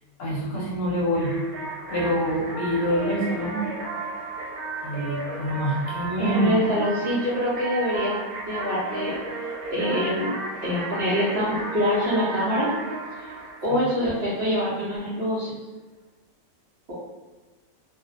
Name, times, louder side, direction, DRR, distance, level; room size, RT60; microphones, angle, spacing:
voice 1, 0.2-1.3 1.9-3.7 4.8-6.5 13.7-13.8, equal, 65° left, -4 dB, 0.9 m, -26 dB
sound 1, 1.1-14.6, right 3 dB, 85° right, 1.1 m, -34 dB
voice 2, 6.2-8.2 8.5-9.1 9.7-10.3 10.6-12.7 13.6-15.6, equal, 60° right, -8 dB, 0.7 m, -25 dB
2.5 x 2.0 x 2.4 m, 1.2 s
omnidirectional pair, 1.6 m